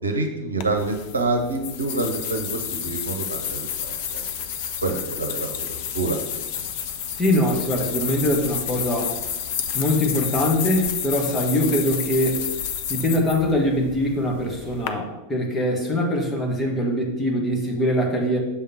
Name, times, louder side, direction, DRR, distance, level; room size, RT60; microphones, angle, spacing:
voice 1, 0.0-4.2 4.8-5.4 5.9-6.2, right 2 dB, 75° right, 4 dB, 0.8 m, -26 dB
sound 1, 0.6-14.9, left 8 dB, 50° left, 0.6 m, -30 dB
voice 2, 7.2-9.1 9.7-12.5 12.9-18.4, left 1 dB, 10° left, -1 dB, 1.5 m, -23 dB
6.9 x 3.6 x 5.8 m, 1.0 s
figure-of-eight pair, 90°, 0 cm